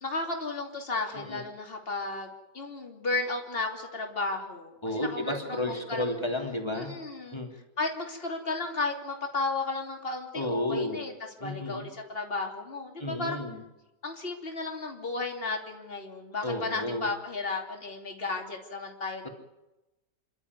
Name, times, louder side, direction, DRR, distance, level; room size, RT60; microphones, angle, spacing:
voice 1, 0.0-6.2 6.7-7.4 7.8-11.1 11.4-13.4 14.0-19.3, left 3 dB, 35° left, 2 dB, 3.2 m, -34 dB
voice 2, 4.8-6.9 7.3-7.5 10.3-11.0 11.4-11.8 13.0-13.6 16.4-17.1, left 1 dB, 15° left, 2 dB, 3.2 m, -32 dB
29.0 x 12.5 x 9.7 m, 0.97 s
omnidirectional pair, 1.8 m